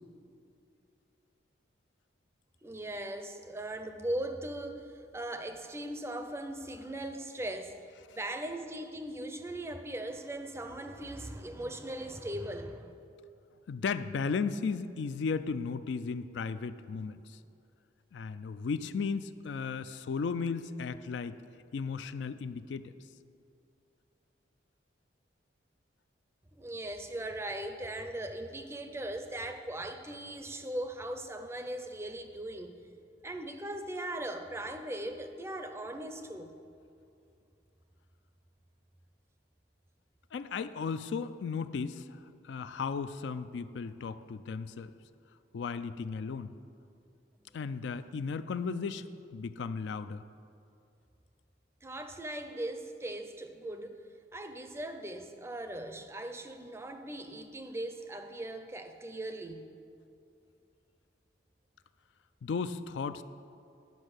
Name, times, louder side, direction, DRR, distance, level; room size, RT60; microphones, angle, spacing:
voice 1, 2.6-7.8 8.1-12.9 26.6-32.7 33.2-36.5 51.8-54.0 54.3-59.7, right 1 dB, 15° right, 7 dB, 0.5 m, -39 dB
voice 2, 13.7-17.4 18.1-21.3 21.7-22.9 40.3-44.9 45.5-46.5 47.5-50.2 62.4-63.2, left 5 dB, 75° left, 12 dB, 0.4 m, -35 dB
11.0 x 5.3 x 6.4 m, 2.6 s
head